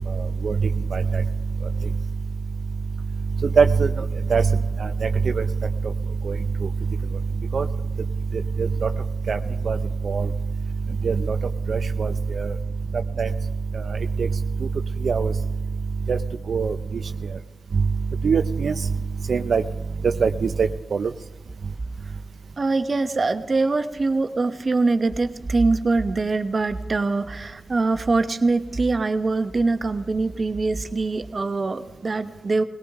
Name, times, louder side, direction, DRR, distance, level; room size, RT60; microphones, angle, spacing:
voice 1, 3.6-3.9 4.3-4.4 7.5-7.6 9.3-9.4 9.7-9.8 10.1-10.2 11.0-11.1 11.7-12.1 12.4-12.5 13.2-13.3 15.0-15.3 16.5-16.7 18.2-18.7 19.3-19.6 20.2-20.3 20.6-20.7 21.0-21.1, right 5 dB, 75° right, 7 dB, 0.6 m, -20 dB
voice 2, 22.6-32.6, right 3 dB, 50° right, 8 dB, 1.1 m, -23 dB
20.5 x 17.5 x 3.7 m, 1.3 s
cardioid pair, 50°, 0 cm